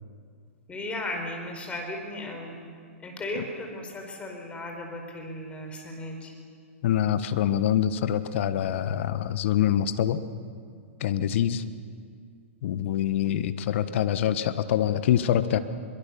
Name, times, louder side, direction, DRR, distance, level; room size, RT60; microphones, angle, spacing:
voice 1, 0.7-2.7 3.0-6.3, left 1 dB, 15° left, 2 dB, 4.8 m, -36 dB
voice 2, 6.8-10.2 11.0-11.6 12.6-15.6, left 10 dB, 60° left, 12 dB, 1.3 m, -25 dB
23.5 x 22.5 x 7.1 m, 2.2 s
hypercardioid pair, 120°, 7 cm